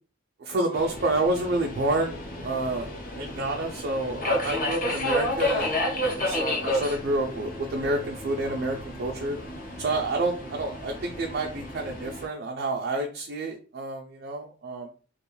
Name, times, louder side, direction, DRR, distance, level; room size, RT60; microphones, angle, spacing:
voice 1, 0.4-2.9 3.2-5.7 6.0-9.4 9.8-14.9, right 2 dB, 50° right, 1 dB, 0.3 m, -29 dB
Subway metro underground, 0.7-12.3, left 1 dB, 40° left, 0.6 m, -31 dB
2.4 x 2.2 x 3.0 m, 0.38 s
head